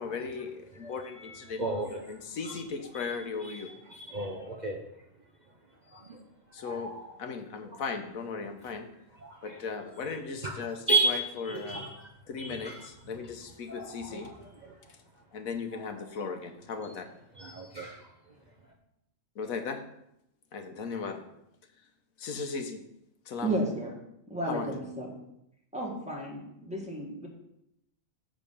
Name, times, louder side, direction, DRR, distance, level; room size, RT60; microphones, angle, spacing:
voice 1, 0.0-1.6 2.1-3.7 6.5-8.9 9.4-11.9 12.3-14.3 14.9-15.0 15.3-17.1 19.3-19.8 20.5-21.2 22.2-22.8 23.3-23.6 24.5-24.8, left 5 dB, 90° left, 6 dB, 1.4 m, -37 dB
voice 2, 4.0-4.8 5.9-6.2 6.6-7.0 9.2-9.4 10.9-11.9 12.4-12.8 13.7-14.3 17.4-18.0, right 3 dB, 40° right, 1 dB, 0.8 m, -31 dB
voice 3, 23.4-23.9 24.3-25.2 25.7-27.3, right 1 dB, 5° right, -3 dB, 1.7 m, -33 dB
9.1 x 3.8 x 6.9 m, 0.80 s
omnidirectional pair, 1.4 m